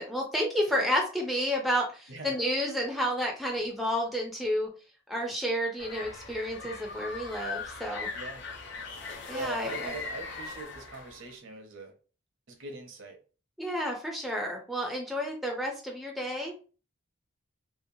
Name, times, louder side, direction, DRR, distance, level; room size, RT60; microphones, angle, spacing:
voice 1, 0.0-4.7 5.1-8.1 9.3-9.9 13.6-16.5, equal, ahead, 0 dB, 0.3 m, -31 dB
voice 2, 2.1-2.4 8.1-8.4 9.3-11.9 12.5-13.2, right 2 dB, 65° right, 3 dB, 0.7 m, -41 dB
sound 1, 5.8-11.3, left 4 dB, 55° left, 0.5 m, -40 dB
2.7 x 2.1 x 2.6 m, 0.37 s
head